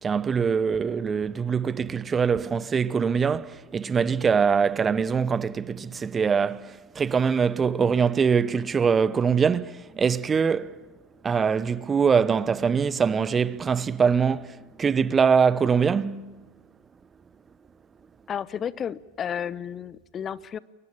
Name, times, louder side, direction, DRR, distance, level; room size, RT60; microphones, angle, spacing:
voice 1, 0.0-10.7 11.2-16.4, right 6 dB, 20° right, 0.9 m, -23 dB
voice 2, 18.3-20.6, left 8 dB, 30° left, 0.8 m, -32 dB
29.5 x 23.5 x 7.3 m
figure-of-eight pair, 85°, 0 cm